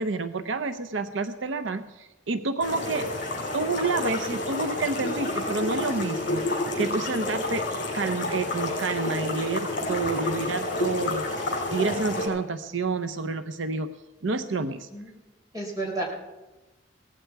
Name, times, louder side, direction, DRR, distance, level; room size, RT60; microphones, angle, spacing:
voice 1, 0.0-3.1 3.5-7.6 7.9-13.9 14.2-14.9, right 3 dB, 85° right, 10 dB, 0.7 m, -29 dB
sound 1, 2.6-12.3, left 2 dB, 45° left, 6.3 m, -29 dB
voice 2, 14.6-15.1 15.5-16.0, right 2 dB, 20° right, 0 dB, 4.2 m, -33 dB
18.0 x 14.5 x 4.7 m, 1.1 s
head